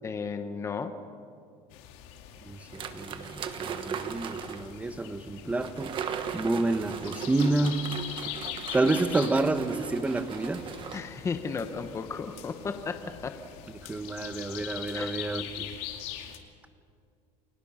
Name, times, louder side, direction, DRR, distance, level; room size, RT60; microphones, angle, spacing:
voice 1, 0.0-0.9 10.9-13.4 14.9-15.2, left 5 dB, 20° left, 8 dB, 1.1 m, -34 dB
sound 1, 1.7-16.4, left 11 dB, 90° left, 2.3 m, -42 dB
sound 2, 2.7-4.7 5.6-11.0, right 7 dB, 35° right, 1.3 m, -38 dB
voice 2, 2.9-5.9 6.3-7.8 8.7-10.7 13.9-15.7, right 2 dB, 10° right, 10 dB, 1.1 m, -29 dB
29.5 x 22.0 x 5.8 m, 2.3 s
cardioid pair, 160°, 15 cm